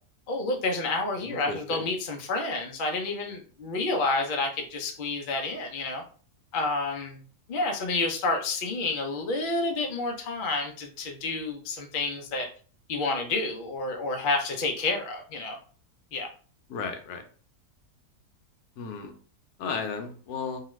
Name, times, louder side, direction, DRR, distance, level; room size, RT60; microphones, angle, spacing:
voice 1, 0.3-6.0 6.5-7.2 7.5-12.5 12.9-15.6 16.1-16.3, left 3 dB, 60° left, 2 dB, 0.5 m, -29 dB
voice 2, 1.2-1.9 16.7-17.2 18.8-19.1 19.6-20.6, left 5 dB, 80° left, 5 dB, 1.1 m, -34 dB
2.8 x 2.4 x 3.0 m, 0.40 s
omnidirectional pair, 1.7 m